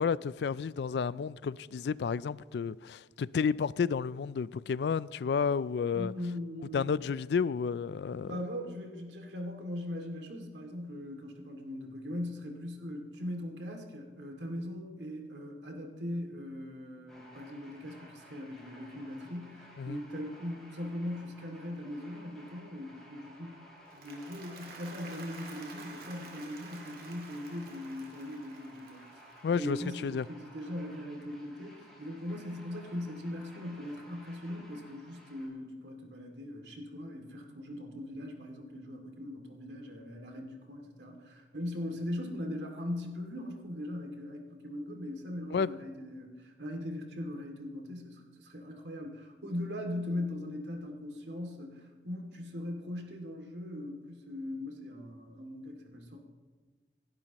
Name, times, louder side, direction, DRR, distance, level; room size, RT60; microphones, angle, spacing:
voice 1, 0.0-6.1 6.7-8.3 19.8-20.0 29.4-30.3 45.5-45.7, left 6 dB, 70° left, 0.3 m, -31 dB
voice 2, 5.9-6.9 8.3-23.6 23.9-56.2, left 1 dB, 85° right, 2.4 m, -40 dB
sound 1, 17.1-35.5, equal, 5° left, 5.9 m, -56 dB
Applause, 23.7-30.1, right 3 dB, 55° right, 2.2 m, -51 dB
27.0 x 11.5 x 3.0 m
head